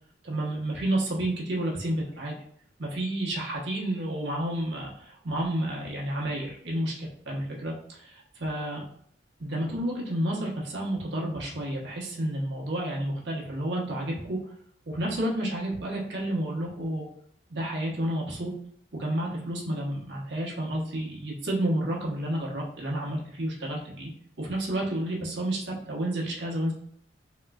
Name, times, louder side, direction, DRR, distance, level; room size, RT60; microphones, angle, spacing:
voice 1, 0.2-2.3 2.8-8.8 9.4-14.4 14.9-17.1 17.5-18.5 18.9-24.1 24.4-26.7, right 1 dB, 65° right, -4 dB, 1.0 m, -30 dB
3.7 x 3.0 x 2.3 m, 0.65 s
head